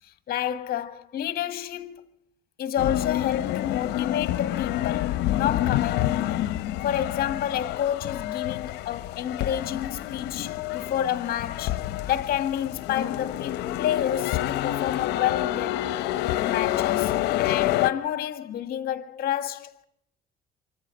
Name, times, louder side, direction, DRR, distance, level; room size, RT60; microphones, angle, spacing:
voice 1, 0.3-2.0 2.6-6.5 6.8-11.8 12.1-15.9 16.4-19.9, left 10 dB, 65° left, 1.7 m, -29 dB
sound 1, 2.8-17.9, left 14 dB, 85° left, 0.8 m, -28 dB
26.0 x 13.5 x 7.8 m
cardioid pair, 110°, 17 cm